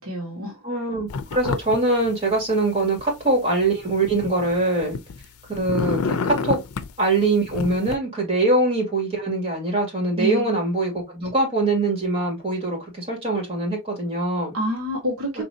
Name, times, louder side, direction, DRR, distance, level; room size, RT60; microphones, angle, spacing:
voice 1, 0.0-0.6 10.1-10.6 14.5-15.4, equal, 70° right, 1.5 m, -27 dB
voice 2, 0.6-5.0 5.5-6.6 7.0-14.5 15.4-15.5, right 2 dB, 25° right, 2.2 m, -23 dB
sound 1, 1.1-1.8 2.0-3.0 3.6-5.2 5.5-6.9 7.5-8.0, left 5 dB, 90° left, 0.5 m, -28 dB
4.1 x 3.0 x 2.7 m
head